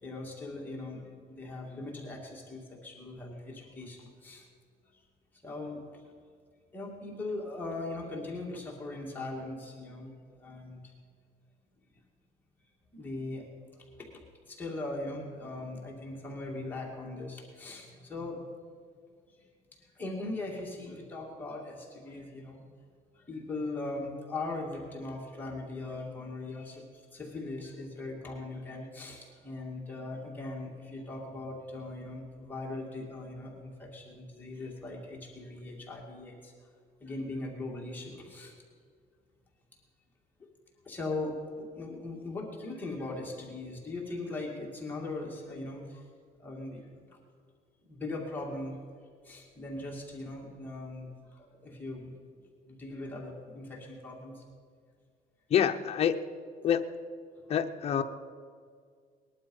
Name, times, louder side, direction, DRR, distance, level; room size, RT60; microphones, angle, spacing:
voice 1, 0.0-4.5 4.9-5.0 5.4-6.0 6.7-10.9 12.9-13.5 13.9-18.5 19.4-22.6 23.1-36.5 37.0-38.6 40.8-46.0 46.4-46.8 47.1-47.2 47.8-48.8 49.2-52.1 52.7-54.4 57.4-57.5, left 2 dB, 10° left, -3 dB, 2.2 m, -40 dB
voice 2, 55.5-56.2 56.6-56.8 57.5-58.0, left 9 dB, 40° left, 6 dB, 0.7 m, -26 dB
20.0 x 11.5 x 5.4 m, 2.1 s
cardioid pair, 165°, 16 cm